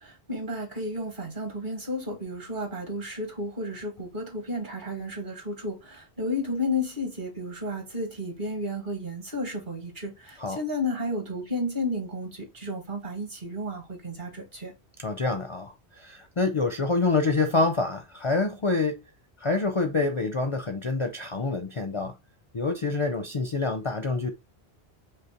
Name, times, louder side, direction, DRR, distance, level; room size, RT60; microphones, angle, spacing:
voice 1, 0.0-14.7, left 1 dB, 50° right, 1.6 m, -32 dB
voice 2, 15.0-19.1 19.4-22.2 22.5-24.3, left 3 dB, 40° left, 0.5 m, -27 dB
5.4 x 2.1 x 4.1 m
omnidirectional pair, 1.1 m